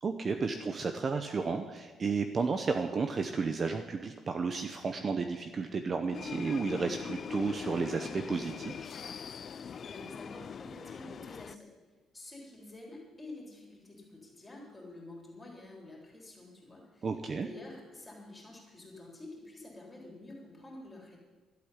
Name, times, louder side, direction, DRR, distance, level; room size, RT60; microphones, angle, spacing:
voice 1, 0.0-8.9 17.0-17.5, right 4 dB, 30° right, 6 dB, 0.7 m, -32 dB
sound 1, 6.1-11.6, left 7 dB, 35° left, 0.3 m, -42 dB
voice 2, 9.9-11.7 12.1-17.1 17.3-21.2, left 2 dB, 15° left, -2 dB, 3.7 m, -49 dB
12.0 x 8.4 x 9.9 m, 1.3 s
cardioid pair, 155°, 0 cm